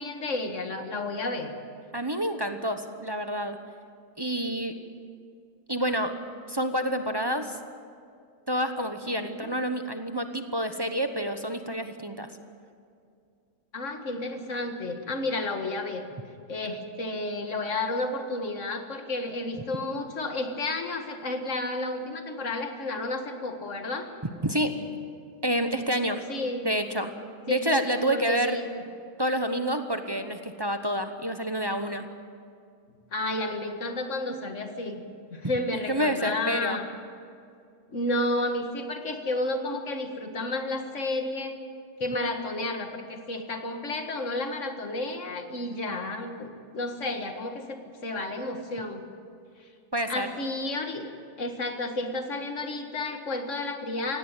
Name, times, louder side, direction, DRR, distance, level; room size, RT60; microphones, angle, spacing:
voice 1, 0.0-1.5 9.2-9.5 13.7-16.0 16.5-24.1 26.3-26.8 27.5-27.6 28.1-28.7 33.1-35.0 35.3-36.9 37.9-41.6 42.0-49.0 49.6-49.7 50.1-51.1 51.4-54.2, left 2 dB, 50° left, 5 dB, 2.1 m, -31 dB
voice 2, 1.9-3.6 4.2-4.7 5.7-6.1 6.5-7.6 8.5-12.3 24.4-24.8 25.4-26.2 26.6-27.1 27.5-28.6 29.2-32.0 35.9-36.8 49.9-50.3, equal, 20° right, 7 dB, 0.9 m, -28 dB
17.5 x 17.5 x 9.1 m, 2.3 s
omnidirectional pair, 1.6 m